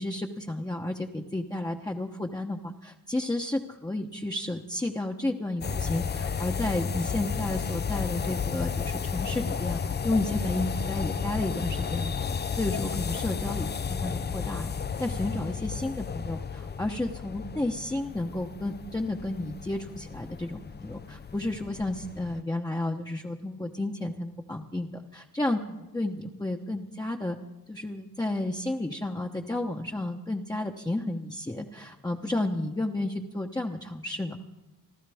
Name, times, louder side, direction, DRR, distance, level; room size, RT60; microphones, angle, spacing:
voice 1, 0.0-12.3 12.5-14.7 15.0-27.4 27.7-34.4, left 1 dB, 10° left, -1 dB, 1.0 m, -32 dB
sound 1, 5.6-22.4, left 6 dB, 30° left, 0.5 m, -33 dB
29.0 x 12.5 x 3.5 m, 1.0 s
cardioid pair, 85°, 38 cm